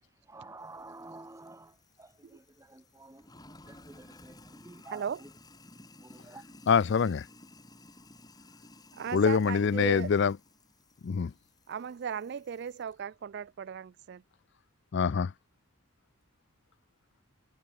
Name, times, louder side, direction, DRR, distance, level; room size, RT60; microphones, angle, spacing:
voice 1, 0.3-5.3 6.0-6.4, right 2 dB, 15° right, 0.8 m, -50 dB
Sink (filling or washing), 0.6-12.9, left 2 dB, 15° left, 2.9 m, -56 dB
voice 2, 4.9-5.2 9.0-10.1 11.7-14.2, right 7 dB, 50° right, 0.3 m, -36 dB
voice 3, 6.7-7.3 9.1-10.4 11.0-11.3 14.9-15.3, left 6 dB, 50° left, 0.4 m, -25 dB
head